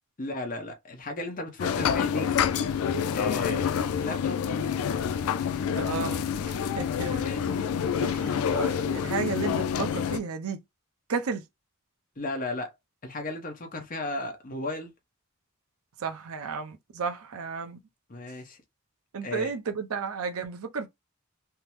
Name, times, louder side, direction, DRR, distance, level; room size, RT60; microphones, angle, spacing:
voice 1, 0.2-2.6 3.1-3.7 4.0-4.5 7.1-7.7 12.2-12.7 13.0-14.9 18.1-18.6 19.2-19.5, left 2 dB, 40° left, 0.8 m, -35 dB
sound 1, 1.6-10.2, left 7 dB, 80° left, 0.3 m, -27 dB
voice 2, 5.8-7.3 8.0-10.6 11.1-11.4 16.0-17.8 19.1-20.9, right 5 dB, 80° right, 0.6 m, -33 dB
3.4 x 2.0 x 2.9 m
head